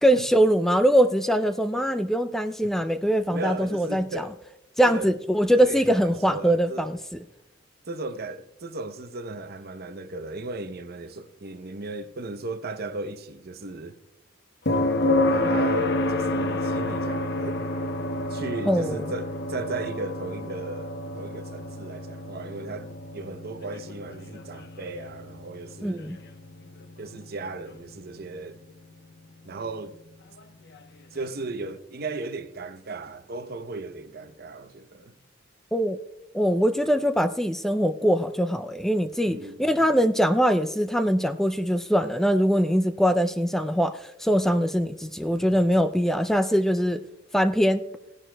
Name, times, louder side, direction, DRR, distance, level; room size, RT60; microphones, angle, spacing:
voice 1, 0.0-4.2 4.8-7.2 18.7-19.0 25.8-26.2 35.7-36.0 36.3-47.0 47.3-47.8, equal, ahead, 0.4 m, -22 dB
voice 2, 3.3-4.3 4.8-5.1 5.6-6.9 7.9-13.9 15.3-17.7 18.3-26.1 27.0-28.6 29.4-29.9 31.1-35.1 39.3-39.9, right 3 dB, 55° right, 0.7 m, -36 dB
sound 1, 14.7-28.5 30.7-30.8, left 1 dB, 60° left, 0.9 m, -29 dB
17.5 x 11.0 x 2.2 m
head